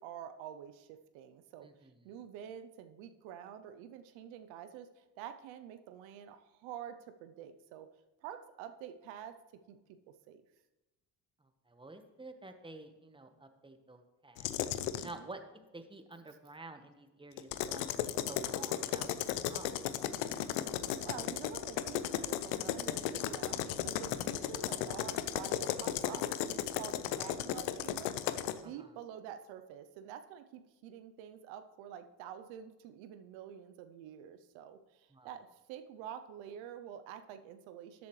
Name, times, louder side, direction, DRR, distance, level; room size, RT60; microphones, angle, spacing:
voice 1, 0.0-7.9 8.2-9.4 9.7-10.0 10.3-10.4 14.9-15.3 21.0-38.1, right 9 dB, 85° right, 9 dB, 0.7 m, -48 dB
voice 2, 11.7-14.6 15.0-19.8 28.6-28.9 35.1-35.3, right 2 dB, 10° right, 7 dB, 1.2 m, -50 dB
sound 1, 14.4-15.1 17.4-28.6, left 11 dB, 85° left, 0.7 m, -35 dB
13.0 x 8.2 x 3.2 m, 1.1 s
supercardioid pair, 60°, 45 cm